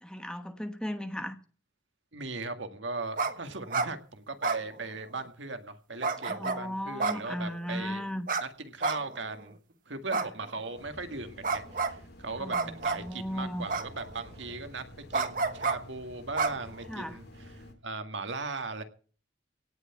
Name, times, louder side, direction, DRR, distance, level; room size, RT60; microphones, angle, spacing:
voice 1, 0.0-1.4 6.3-8.3 10.1-10.2 12.4-13.7 16.9-17.2, equal, 5° left, 8 dB, 1.2 m, -36 dB
voice 2, 2.1-8.0 8.4-9.6 9.9-12.6 12.8-18.8, right 3 dB, 75° right, 7 dB, 2.0 m, -38 dB
sound 1, 3.2-3.3 3.6-3.9 4.4-5.2 6.0-6.6 7.0-7.7 8.3-8.4 8.8-9.4 10.1-10.8 11.4-11.9 12.5-13.1 13.7-14.3 15.1-15.8 16.3-17.1, right 4 dB, 45° right, 1.3 m, -30 dB
sound 2, 10.8-17.7, left 1 dB, 55° left, 2.6 m, -50 dB
17.5 x 6.0 x 8.7 m, 0.42 s
head